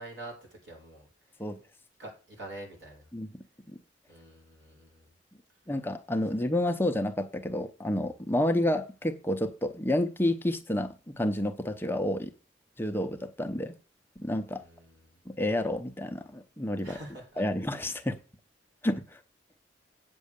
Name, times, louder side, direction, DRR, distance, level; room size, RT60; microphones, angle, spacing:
voice 1, 0.0-1.5 2.0-3.1 4.1-5.2 14.6-15.2 16.8-17.5, right 2 dB, 75° right, 5.1 m, -46 dB
voice 2, 3.1-3.8 5.7-12.3 12.8-13.7 14.2-14.6 15.3-17.0 17.4-18.2 18.8-19.2, left 1 dB, 10° left, 0.7 m, -30 dB
8.6 x 6.2 x 6.8 m
head